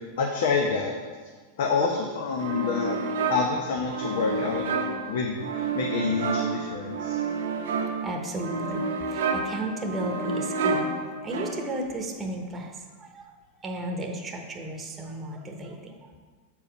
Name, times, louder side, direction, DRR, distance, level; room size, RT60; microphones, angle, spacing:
voice 1, 0.2-1.0 1.6-4.8 5.0-7.2, left 5 dB, 70° left, 1 dB, 0.8 m, -27 dB
sound 1, 2.4-11.9, right 4 dB, 85° right, 0.9 m, -30 dB
voice 2, 2.6-2.9 4.9-5.0 8.0-16.1, right 1 dB, 20° right, 2 dB, 1.0 m, -34 dB
7.0 x 4.8 x 5.2 m, 1.5 s
supercardioid pair, 135°, 0 cm